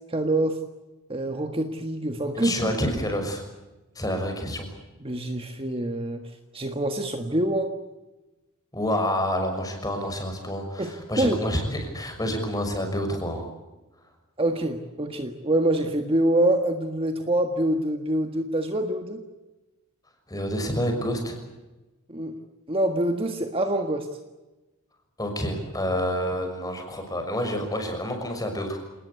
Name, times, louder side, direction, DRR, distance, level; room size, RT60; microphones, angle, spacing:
voice 1, 0.1-0.6 1.1-2.7 5.0-6.2 6.5-7.7 10.8-11.4 14.4-19.2 22.1-22.3 22.7-24.1, right 1 dB, 25° right, 5 dB, 1.6 m, -25 dB
voice 2, 2.3-3.4 3.9-4.7 8.7-13.5 20.3-21.4 25.2-28.8, equal, 15° left, 4 dB, 6.1 m, -28 dB
28.5 x 19.5 x 8.3 m, 1.1 s
head